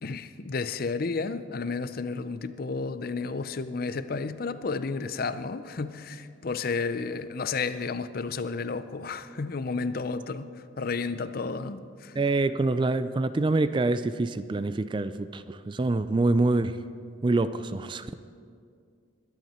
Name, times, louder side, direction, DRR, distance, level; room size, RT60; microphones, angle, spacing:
voice 1, 0.0-10.5 10.8-12.1, left 4 dB, 45° left, 13 dB, 0.5 m, -32 dB
voice 2, 12.2-16.8 17.2-18.1, right 2 dB, 25° right, 13 dB, 0.3 m, -26 dB
21.5 x 11.0 x 4.3 m, 2.3 s
head